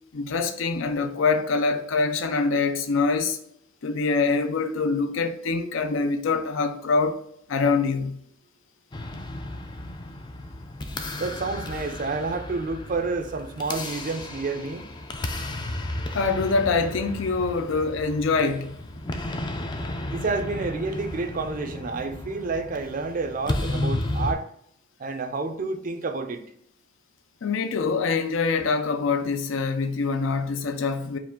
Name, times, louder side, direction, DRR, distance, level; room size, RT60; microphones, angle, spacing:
voice 1, 0.1-3.4 3.8-7.2 7.5-8.3 16.1-18.8 27.4-31.2, left 4 dB, 80° left, 0.5 m, -24 dB
sound 1, 8.9-24.3, left 1 dB, 20° left, 0.3 m, -33 dB
voice 2, 11.2-14.9 20.1-24.5 25.0-26.4, right 3 dB, 45° right, 0.4 m, -29 dB
4.7 x 2.4 x 3.6 m
head